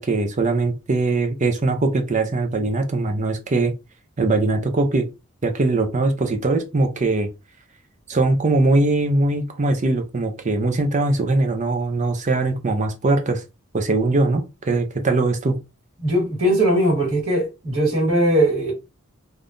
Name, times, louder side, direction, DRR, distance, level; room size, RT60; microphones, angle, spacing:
voice 1, 0.0-3.7 4.2-5.1 5.4-7.3 8.1-13.4 13.7-15.6, right 2 dB, 35° right, 0.5 m, -21 dB
voice 2, 16.0-18.7, right 1 dB, 75° right, 1.9 m, -19 dB
3.5 x 2.4 x 2.5 m
head